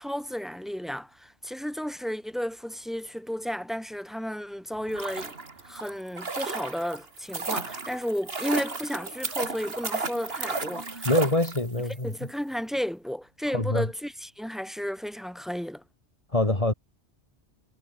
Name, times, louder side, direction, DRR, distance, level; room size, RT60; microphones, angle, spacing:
voice 1, 0.0-5.3 5.6-11.1 12.0-15.8, equal, ahead, 5.1 m, -33 dB
sound 1, 4.8-11.9 12.2-12.3, right 3 dB, 60° right, 2.6 m, -33 dB
voice 2, 11.0-12.1 13.5-13.9 16.3-16.7, left 2 dB, 30° left, 3.1 m, -25 dB
omnidirectional pair, 1.1 m